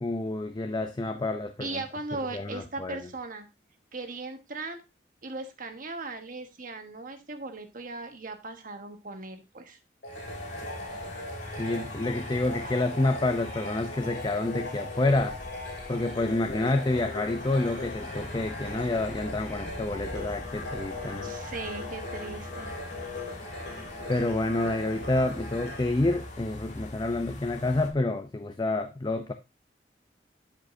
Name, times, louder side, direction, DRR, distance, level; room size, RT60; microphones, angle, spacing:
voice 1, 0.0-1.8 2.3-3.0 11.6-15.4 15.9-21.3 24.1-29.3, left 2 dB, 25° left, 0.5 m, -28 dB
voice 2, 1.6-3.5 3.9-4.8 5.2-9.8 12.6-12.7 21.2-22.7, right 3 dB, 50° right, 1.3 m, -38 dB
sound 1, 10.0-26.8, left 2 dB, 85° left, 2.9 m, -40 dB
sound 2, 10.0-27.9, left 1 dB, 45° left, 1.7 m, -42 dB
12.0 x 5.1 x 2.7 m
head